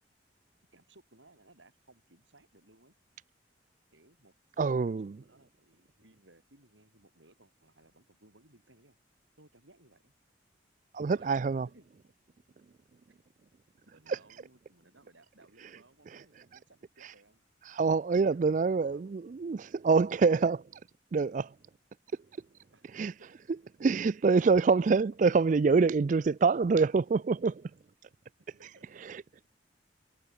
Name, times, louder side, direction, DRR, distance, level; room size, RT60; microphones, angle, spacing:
voice 1, 0.7-2.9 3.9-4.3 4.6-9.0 9.4-10.1 11.1-12.0 13.1-13.2 13.8-17.4 18.2-19.1 22.7-23.3 28.6-29.2, right 2 dB, 80° right, 6.0 m, -61 dB
voice 2, 4.6-5.2 10.9-11.7 14.1-14.2 16.1-16.4 17.0-17.1 17.6-20.6 21.1-21.5 22.9-23.1 23.8-27.6 29.0-29.2, right 4 dB, 40° right, 0.3 m, -26 dB
head